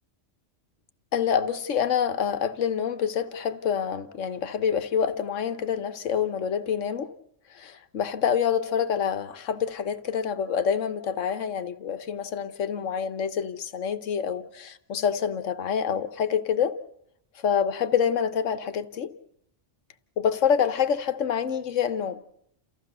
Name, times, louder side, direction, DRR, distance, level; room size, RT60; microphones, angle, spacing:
voice 1, 1.1-7.1 7.5-16.8 17.4-19.1 20.2-22.2, left 7 dB, 85° left, 1.4 m, -27 dB
29.0 x 15.0 x 6.7 m
omnidirectional pair, 1.2 m